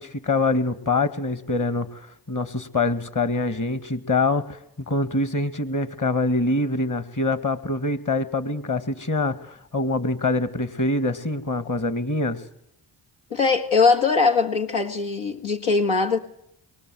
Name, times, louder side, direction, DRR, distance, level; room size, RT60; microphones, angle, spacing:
voice 1, 0.0-12.4, left 2 dB, 40° left, 2.2 m, -25 dB
voice 2, 13.3-16.2, left 4 dB, 75° left, 2.0 m, -21 dB
24.0 x 23.0 x 7.9 m
supercardioid pair, 40°, 50 cm